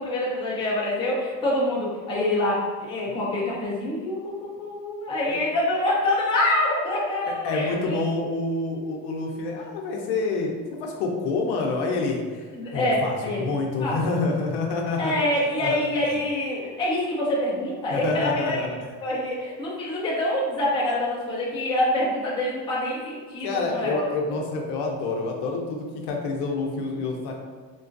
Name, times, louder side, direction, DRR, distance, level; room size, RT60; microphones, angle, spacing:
voice 1, 0.0-8.1 12.5-13.5 13.8-14.0 15.0-18.6 19.0-24.4, left 1 dB, 10° left, -6 dB, 0.5 m, -26 dB
voice 2, 7.2-12.5 12.7-15.1 15.6-15.8 17.9-18.7 23.4-27.4, left 3 dB, 65° left, 1 dB, 0.6 m, -27 dB
3.8 x 2.4 x 2.5 m, 1.5 s
cardioid pair, 170°, 43 cm